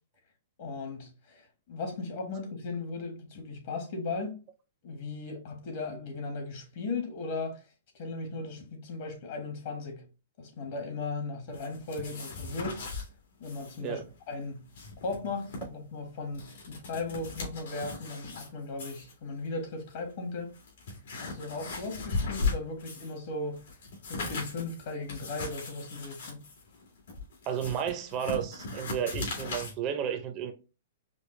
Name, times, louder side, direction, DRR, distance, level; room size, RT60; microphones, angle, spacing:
voice 1, 0.6-4.4 4.8-7.6 7.9-10.1 10.4-12.8 13.4-14.0 14.3-14.6 15.0-20.5 21.2-23.6 24.1-26.4, left 3 dB, 50° left, 1.4 m, -37 dB
sound 1, 11.5-13.1 13.4-13.8 14.0-14.1 14.6-15.6 16.2-18.5 18.8-19.1 19.9-20.0 20.5-23.2 23.5-29.7, left 3 dB, 75° left, 1.9 m, -37 dB
voice 2, 27.5-30.5, right 9 dB, 30° right, 0.6 m, -32 dB
5.1 x 2.1 x 3.1 m
hypercardioid pair, 160°, 0 cm